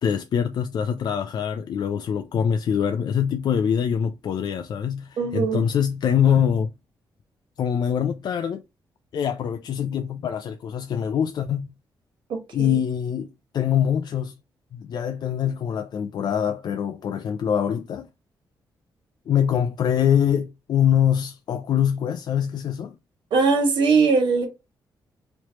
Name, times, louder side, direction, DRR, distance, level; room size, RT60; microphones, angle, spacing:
voice 1, 0.0-6.7 7.6-8.6 9.1-11.7 12.5-14.3 14.7-18.1 19.3-22.9, left 8 dB, 60° left, 0.4 m, -24 dB
voice 2, 5.2-5.6 12.3-12.8 23.3-24.5, right 4 dB, 90° right, 1.5 m, -20 dB
3.1 x 3.1 x 2.9 m
cardioid pair, 115°, 8 cm